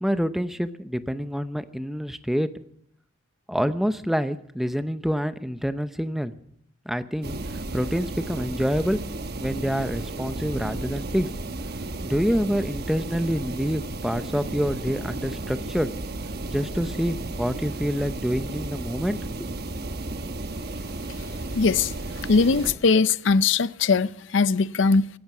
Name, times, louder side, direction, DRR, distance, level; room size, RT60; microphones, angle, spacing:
voice 1, 0.0-2.5 3.5-6.3 6.9-7.4 7.7-9.0 9.4-11.3 12.0-15.9 16.5-19.5, equal, ahead, 0.7 m, -27 dB
sound 1, 7.2-22.7, right 2 dB, 50° right, 1.1 m, -33 dB
voice 2, 21.6-21.9 22.3-25.1, left 4 dB, 60° left, 0.5 m, -20 dB
17.0 x 14.0 x 6.0 m
head